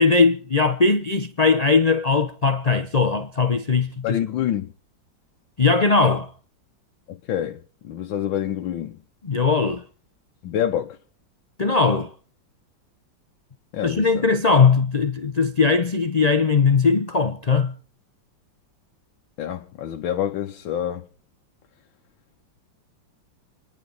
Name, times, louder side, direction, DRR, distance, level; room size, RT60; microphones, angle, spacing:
voice 1, 0.0-4.2 5.6-6.3 9.2-9.8 11.6-12.1 13.8-17.8, left 4 dB, 40° left, 0.5 m, -19 dB
voice 2, 4.0-4.7 7.1-9.0 10.4-11.0 13.7-14.3 19.4-21.1, left 10 dB, 85° left, 1.7 m, -27 dB
29.0 x 10.5 x 3.9 m
omnidirectional pair, 2.1 m